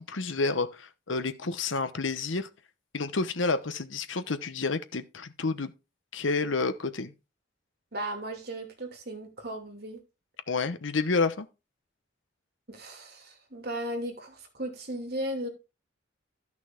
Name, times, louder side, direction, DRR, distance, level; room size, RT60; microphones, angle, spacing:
voice 1, 0.0-2.5 2.9-5.7 6.1-7.1 10.5-11.5, left 3 dB, 85° left, 1.0 m, -29 dB
voice 2, 7.9-10.0 12.7-15.5, right 1 dB, 55° right, 2.7 m, -36 dB
13.0 x 6.0 x 3.7 m
head